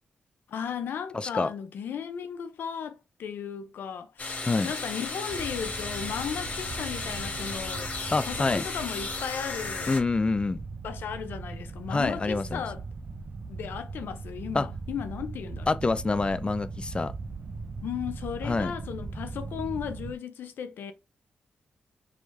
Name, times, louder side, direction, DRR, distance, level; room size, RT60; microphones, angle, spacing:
voice 1, 0.5-7.9 8.2-10.0 10.8-12.8 13.5-15.7 17.8-20.9, left 7 dB, 80° left, 0.5 m, -35 dB
voice 2, 1.1-1.5 4.5-4.7 8.1-8.6 9.9-10.6 11.9-12.6 14.5-14.7 15.7-17.1 18.4-18.7, left 3 dB, 30° left, 0.4 m, -26 dB
sound 1, 4.2-10.0, left 3 dB, 50° left, 1.4 m, -35 dB
sound 2, 5.3-20.1, right 4 dB, 45° right, 0.6 m, -39 dB
5.0 x 3.1 x 3.2 m
supercardioid pair, 50°, 3 cm